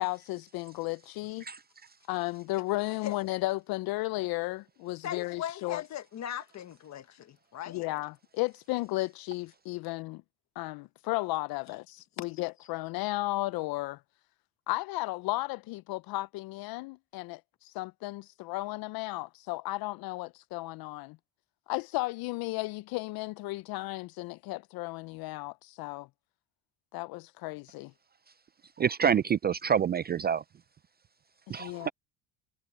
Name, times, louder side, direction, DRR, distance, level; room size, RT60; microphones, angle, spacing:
voice 1, 0.0-1.4 2.1-5.8 7.7-10.2 10.6-14.0 14.7-21.2 21.7-26.1 26.9-27.9 31.5-31.9, left 20 dB, 60° left, 0.5 m, -34 dB
voice 2, 5.0-7.9 12.2-12.3, left 10 dB, 40° left, 1.4 m, -39 dB
voice 3, 28.8-30.4 31.5-31.9, right 8 dB, 25° right, 0.4 m, -27 dB
cardioid pair, 115°, 40 cm